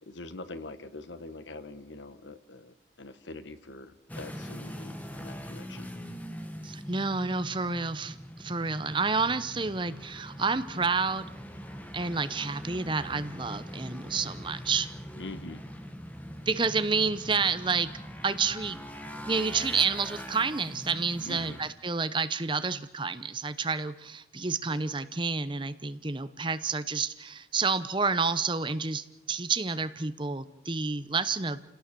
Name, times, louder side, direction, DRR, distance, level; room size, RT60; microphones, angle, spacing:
voice 1, 0.0-5.9 15.2-15.6 21.2-21.6, left 2 dB, 80° left, 12 dB, 1.3 m, -44 dB
sound 1, 4.1-21.7, equal, 10° left, 1.6 m, -42 dB
voice 2, 6.6-11.3 11.9-14.9 16.5-17.9 18.2-18.8 19.3-31.6, right 4 dB, 25° right, 12 dB, 0.9 m, -29 dB
29.0 x 17.5 x 6.9 m, 0.92 s
head